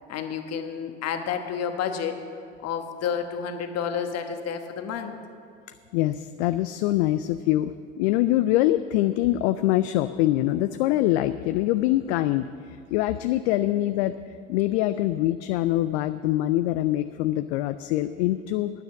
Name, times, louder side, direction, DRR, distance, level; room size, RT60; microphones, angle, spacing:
voice 1, 0.1-2.2 2.6-5.2, left 7 dB, 45° left, 6 dB, 1.3 m, -30 dB
voice 2, 5.9-14.1 14.5-18.7, left 15 dB, 65° left, 11 dB, 0.5 m, -24 dB
9.6 x 9.4 x 7.1 m, 2.3 s
hypercardioid pair, 75°, 36 cm